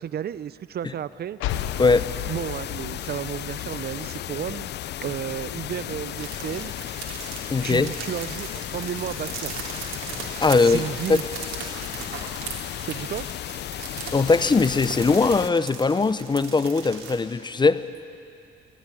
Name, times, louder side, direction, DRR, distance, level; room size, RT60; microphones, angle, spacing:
voice 1, 0.0-1.4 2.2-4.7 5.0-6.7 7.6-9.5 10.6-11.2 12.9-13.3, right 10 dB, 55° right, 16 dB, 0.5 m, -32 dB
sound 1, 1.4-4.9, left 12 dB, 90° left, 0.7 m, -34 dB
sound 2, 1.5-15.5, left 12 dB, 60° left, 0.4 m, -35 dB
sound 3, 6.2-17.1, right 5 dB, 80° right, 3.8 m, -38 dB
voice 2, 7.5-7.9 10.4-10.8 11.1-11.2 14.1-17.8, left 4 dB, 20° left, 14 dB, 0.7 m, -20 dB
16.5 x 16.0 x 9.9 m, 2.5 s
cardioid pair, 90°, 20 cm